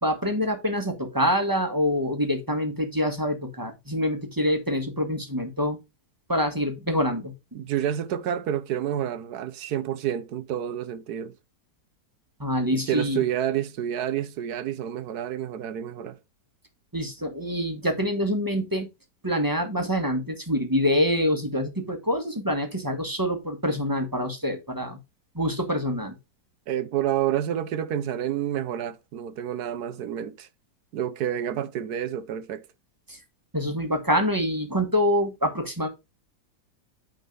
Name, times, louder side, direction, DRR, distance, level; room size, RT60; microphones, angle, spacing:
voice 1, 0.0-5.8 6.3-7.3 12.4-13.2 16.9-18.9 19.2-25.0 25.3-26.1 33.1-33.2 33.5-35.9, equal, 10° right, 1.4 m, -26 dB
voice 2, 7.5-11.3 12.7-16.2 26.7-30.5 30.9-32.6, right 10 dB, 70° right, 1.2 m, -29 dB
9.3 x 3.8 x 5.2 m
omnidirectional pair, 1.8 m